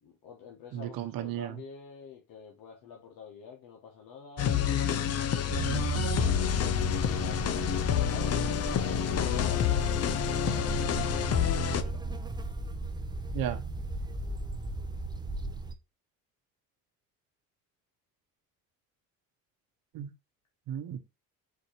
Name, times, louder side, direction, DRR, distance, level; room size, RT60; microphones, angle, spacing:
voice 1, 0.0-5.0 6.2-12.0, left 6 dB, 75° left, 1.0 m, -48 dB
voice 2, 0.7-1.6 5.7-6.2 13.3-13.6 19.9-20.1 20.7-21.0, right 11 dB, 75° right, 0.8 m, -35 dB
sound 1, 4.4-11.8, left 10 dB, 45° left, 0.5 m, -28 dB
sound 2, 5.5-15.7, right 3 dB, 10° right, 0.6 m, -35 dB
4.4 x 2.7 x 4.3 m
cardioid pair, 95°, 34 cm